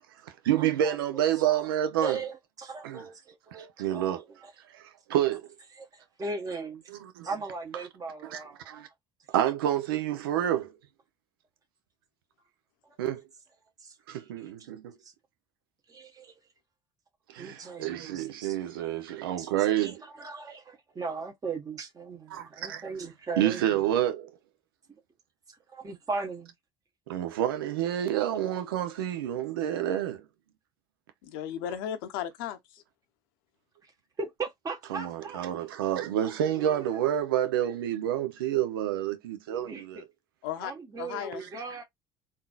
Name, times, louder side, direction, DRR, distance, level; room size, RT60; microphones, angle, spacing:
voice 1, 0.2-2.2 2.8-3.0 3.8-4.2 4.7-5.5 7.0-7.3 8.3-8.4 8.7-8.9 9.3-10.7 13.0-13.2 14.1-15.0 17.3-20.0 22.3-22.8 23.4-24.3 27.1-30.2 34.9-40.1, right 11 dB, 80° right, 0.6 m, -28 dB
voice 2, 1.3-1.7 2.0-4.5 5.8-6.8 7.2-8.9 12.8-13.0 13.8-14.0 14.4-14.7 15.0-15.1 15.9-16.3 17.4-18.6 18.8-18.9 19.4-23.9 24.9-25.0 25.5-26.5 33.8-33.9 34.2-35.5 36.2-37.1 39.5-39.8 40.6-41.8, right 4 dB, 30° right, 1.2 m, -38 dB
voice 3, 31.2-32.8 40.4-40.7 41.0-41.4, left 10 dB, 75° left, 0.7 m, -35 dB
3.7 x 2.6 x 2.4 m
hypercardioid pair, 65°, 12 cm